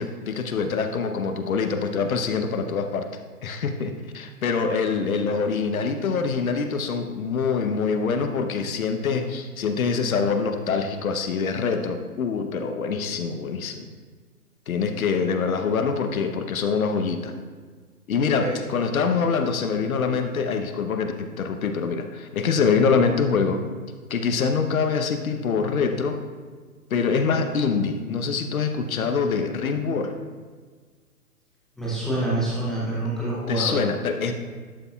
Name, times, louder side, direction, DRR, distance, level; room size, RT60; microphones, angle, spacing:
voice 1, 0.0-3.1 3.4-13.9 14.7-17.3 18.1-23.6 24.1-26.2 26.9-30.2 33.5-34.3, left 5 dB, 65° left, 7 dB, 0.9 m, -25 dB
voice 2, 31.8-33.8, right 2 dB, ahead, -8 dB, 0.6 m, -26 dB
11.5 x 6.7 x 2.4 m, 1.5 s
hypercardioid pair, 135°, 46 cm